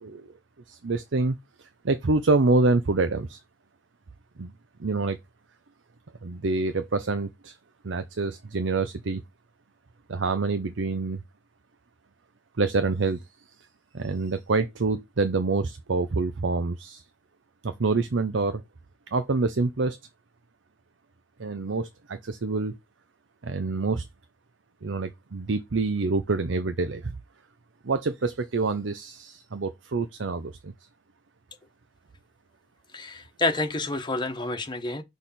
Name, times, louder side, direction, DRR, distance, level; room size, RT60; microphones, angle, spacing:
voice 1, 0.7-3.4 4.4-4.5 4.8-5.2 6.2-7.6 7.8-9.2 10.1-11.2 12.6-13.2 13.9-17.0 17.6-18.6 19.1-20.0 21.4-22.8 23.4-24.1 24.8-27.1 27.8-30.7, right 3 dB, 80° right, 0.7 m, -26 dB
voice 2, 32.9-35.0, left 2 dB, 25° left, 1.2 m, -28 dB
6.4 x 3.5 x 5.7 m
head